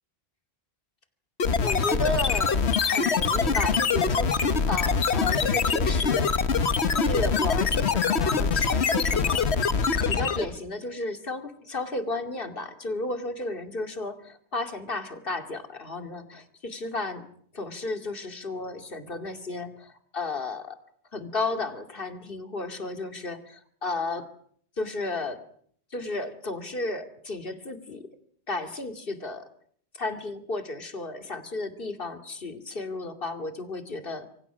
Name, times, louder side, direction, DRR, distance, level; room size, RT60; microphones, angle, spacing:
sound 1, 1.4-10.6, left 5 dB, 85° left, 1.5 m, -24 dB
voice 1, 1.6-6.5 6.9-9.7 10.1-17.2 17.5-20.8 21.1-24.3 24.8-25.4 25.9-28.0 28.5-29.4 29.9-34.3, left 2 dB, 60° left, 7 dB, 2.7 m, -33 dB
26.5 x 25.0 x 6.1 m, 0.62 s
omnidirectional pair, 1.1 m